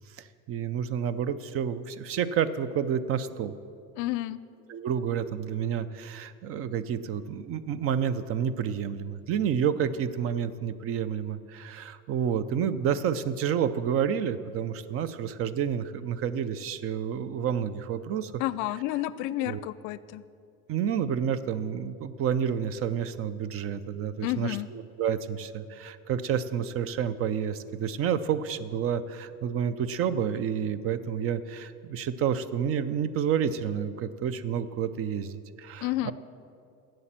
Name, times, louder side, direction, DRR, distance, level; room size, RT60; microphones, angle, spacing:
voice 1, 0.2-3.5 4.7-18.4 19.4-19.7 20.7-36.1, right 8 dB, 45° right, 14 dB, 0.6 m, -29 dB
voice 2, 4.0-4.4 18.4-20.2 24.2-24.7 35.8-36.1, left 15 dB, 70° left, 17 dB, 0.5 m, -30 dB
11.0 x 7.8 x 7.4 m, 2.5 s
cardioid pair, 130°, 32 cm